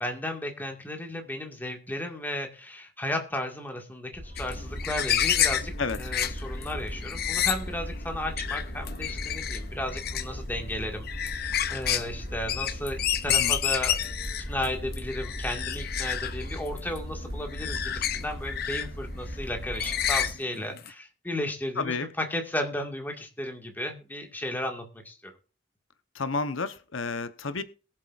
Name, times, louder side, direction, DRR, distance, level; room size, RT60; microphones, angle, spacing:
voice 1, 0.0-11.1 11.7-14.1 14.5-25.3, left 1 dB, 10° left, 3 dB, 1.9 m, -34 dB
sound 1, 4.1-20.3, equal, 35° right, 3.2 m, -38 dB
sound 2, 4.4-20.9, left 10 dB, 50° left, 0.8 m, -30 dB
voice 2, 21.8-22.1 26.1-27.6, left 4 dB, 80° left, 11 dB, 0.9 m, -30 dB
22.0 x 7.5 x 2.5 m, 0.36 s
head